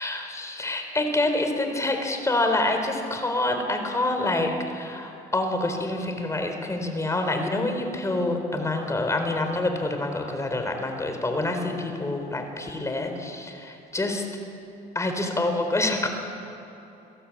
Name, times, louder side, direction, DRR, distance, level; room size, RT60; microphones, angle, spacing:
voice 1, 0.0-14.3 14.9-16.1, left 2 dB, 15° left, 5 dB, 4.1 m, -27 dB
29.5 x 17.0 x 8.7 m, 2.9 s
cardioid pair, 110°, 17 cm